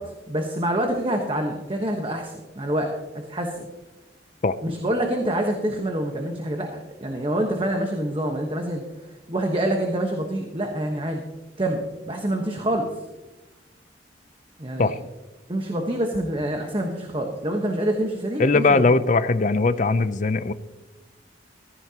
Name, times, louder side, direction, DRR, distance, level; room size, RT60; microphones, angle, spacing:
voice 1, 0.0-3.6 4.6-8.8 9.3-11.2 11.6-12.9 14.6-14.9 15.5-18.8, right 1 dB, 30° right, 2 dB, 1.1 m, -26 dB
voice 2, 18.4-20.5, left 3 dB, 40° left, 14 dB, 0.5 m, -20 dB
15.5 x 14.5 x 2.9 m, 1.1 s
head